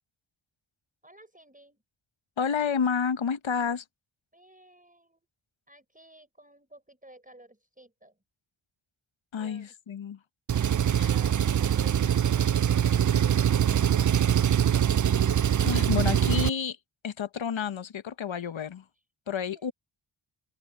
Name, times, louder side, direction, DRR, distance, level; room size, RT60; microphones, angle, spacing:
voice 1, 1.0-1.8 4.3-5.2 5.7-8.1 9.4-9.7 19.5-19.6, right 1 dB, 15° right, 5.4 m, -53 dB
voice 2, 2.4-3.8 9.3-10.2 10.9-11.1 15.6-16.8 17.0-18.8 19.3-19.7, left 7 dB, 65° left, 1.0 m, -30 dB
Engine, 10.5-16.5, right 9 dB, 40° right, 0.4 m, -23 dB
open air
cardioid pair, 50°, 50 cm